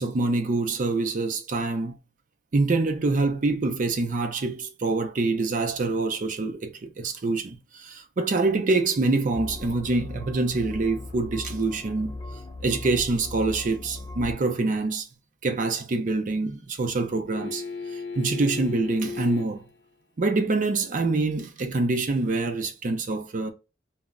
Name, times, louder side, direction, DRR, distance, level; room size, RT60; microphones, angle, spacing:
voice 1, 0.0-2.0 2.5-12.2 12.6-15.1 15.4-17.6 17.9-19.6 20.2-23.5, right 3 dB, 45° right, 0.5 m, -25 dB
sound 1, 9.3-14.3, left 2 dB, 25° left, 0.6 m, -38 dB
sound 2, 17.3-19.7 22.3-22.4, left 4 dB, 75° left, 0.6 m, -35 dB
2.1 x 2.0 x 3.5 m
head